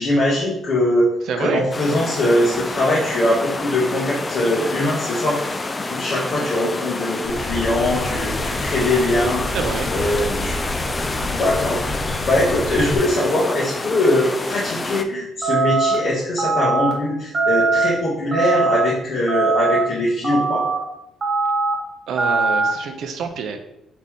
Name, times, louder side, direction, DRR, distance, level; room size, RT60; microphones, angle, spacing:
voice 1, 0.0-1.1 1.4-5.6 5.9-9.4 9.9-10.6 11.2-20.7, left 1 dB, 50° left, -6 dB, 1.2 m, -21 dB
voice 2, 1.2-1.7 9.5-9.9 22.1-23.6, right 6 dB, 75° right, 6 dB, 0.6 m, -26 dB
sound 1, 1.7-15.0, left 3 dB, 25° left, 0.4 m, -28 dB
sound 2, 7.2-13.0, left 1 dB, 80° left, 1.2 m, -30 dB
sound 3, 15.4-16.0 16.4-16.9 17.3-17.9 18.3-18.8 19.3-19.8 20.2-20.8 21.2-21.7 22.2-22.7, right 3 dB, 40° right, 1.2 m, -20 dB
4.2 x 3.0 x 3.6 m, 0.83 s
cardioid pair, 90°, 0 cm